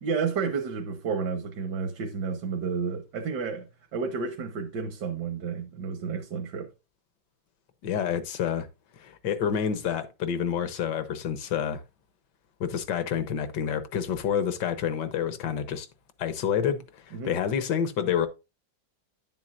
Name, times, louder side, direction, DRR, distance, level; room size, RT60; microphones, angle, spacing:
voice 1, 0.0-6.7 17.1-17.3, right 5 dB, 70° right, 1.6 m, -31 dB
voice 2, 7.8-8.7 9.0-11.8 12.6-15.9 16.2-18.3, left 8 dB, 70° left, 1.5 m, -28 dB
10.0 x 7.5 x 2.5 m
omnidirectional pair, 2.0 m